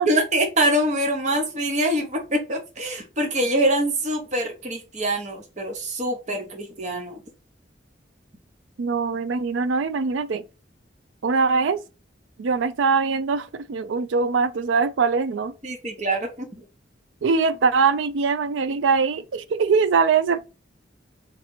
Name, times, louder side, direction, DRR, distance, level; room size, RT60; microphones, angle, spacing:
voice 1, 0.0-7.2 15.6-16.6, right 1 dB, 40° right, 0.9 m, -24 dB
voice 2, 8.8-10.4 11.2-11.8 12.4-15.5 17.2-20.4, right 5 dB, 85° right, 0.4 m, -22 dB
3.3 x 2.9 x 4.2 m
head